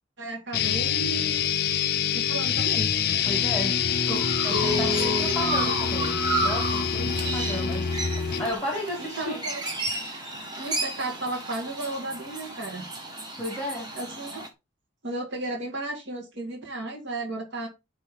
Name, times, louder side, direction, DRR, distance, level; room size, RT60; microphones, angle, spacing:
voice 1, 0.2-1.8 2.1-2.9 4.1-4.2 4.5-5.4 7.5-7.9 9.2-9.6 10.6-12.9 14.0-14.4 15.0-17.7, right 1 dB, 55° right, 1.9 m, -33 dB
sound 1, 0.5-8.5, left 7 dB, 45° left, 0.5 m, -26 dB
voice 2, 3.2-3.8 4.4-7.9 8.4-9.4 13.4-13.9, equal, 5° left, 1.5 m, -33 dB
Chirp tweet, 3.9-14.5, right 2 dB, 20° right, 1.2 m, -33 dB
9.8 x 3.3 x 3.6 m
head